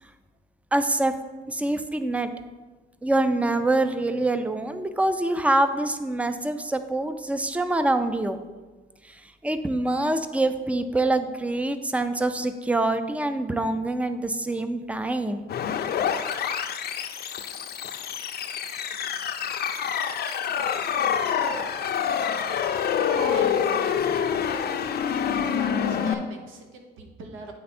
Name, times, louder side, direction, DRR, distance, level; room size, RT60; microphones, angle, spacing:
voice 1, 0.7-1.1 1.5-2.3 3.0-8.4 9.0-15.5, right 2 dB, 5° right, 10 dB, 0.4 m, -25 dB
sound 1, 15.5-26.1, left 8 dB, 55° left, 0.5 m, -26 dB
voice 2, 23.2-24.4 25.5-27.5, right 3 dB, 80° right, 3 dB, 1.0 m, -40 dB
8.7 x 3.4 x 4.2 m, 1.3 s
cardioid pair, 90°, 20 cm